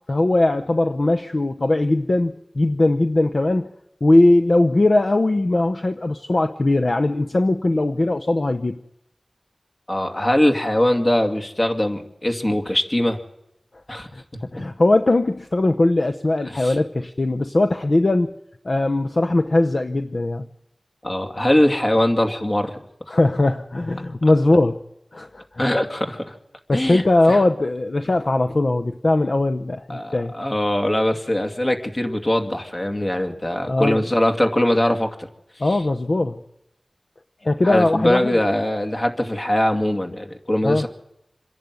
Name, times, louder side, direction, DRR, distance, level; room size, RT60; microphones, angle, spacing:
voice 1, 0.1-3.7 4.0-8.8 14.5-18.3 18.6-20.5 23.1-24.8 25.1-25.4 26.7-30.3 33.7-34.0 35.6-36.4 37.4-38.4 40.6-40.9, left 2 dB, 55° left, 6 dB, 0.8 m, -19 dB
voice 2, 9.9-13.2 13.9-14.1 16.5-16.8 21.0-22.7 25.6-26.3 26.7-27.0 27.3-27.4 29.9-35.3 35.6-35.8 37.6-40.9, left 1 dB, 35° left, 5 dB, 2.4 m, -21 dB
26.0 x 11.0 x 9.5 m, 0.85 s
wide cardioid pair, 60°, 0 cm